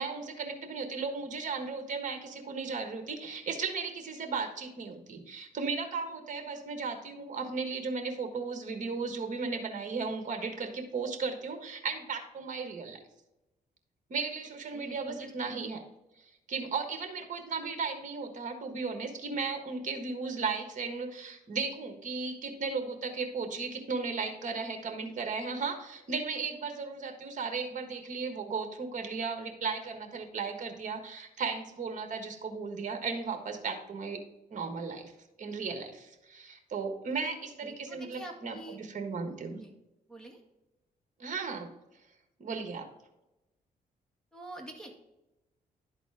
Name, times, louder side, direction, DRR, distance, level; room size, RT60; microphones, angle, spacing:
voice 1, 0.0-13.0 14.1-15.8 16.5-34.2 34.5-35.1 35.4-39.6 41.2-41.7 42.4-42.9, right 4 dB, 50° right, 5 dB, 1.4 m, -35 dB
voice 2, 14.7-15.3 37.1-37.3 37.6-38.8 39.6-39.7 40.1-40.4 44.3-45.1, right 1 dB, 5° left, 1 dB, 1.8 m, -46 dB
11.5 x 4.1 x 3.5 m, 0.95 s
cardioid pair, 80°, 16 cm